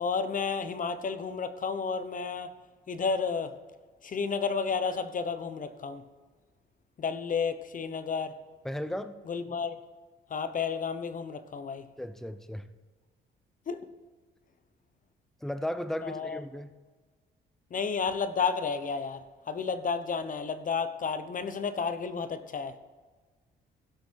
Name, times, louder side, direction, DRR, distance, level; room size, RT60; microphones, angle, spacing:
voice 1, 0.0-2.5 2.9-3.5 4.0-6.0 7.0-8.4 9.3-9.8 10.3-11.9 13.7-13.8 16.0-16.4 17.7-22.7, left 5 dB, 40° left, 11 dB, 1.0 m, -31 dB
voice 2, 8.6-9.1 12.0-12.7 15.4-16.7, left 1 dB, ahead, 11 dB, 0.7 m, -35 dB
16.5 x 6.1 x 4.7 m, 1.3 s
cardioid pair, 90°, 20 cm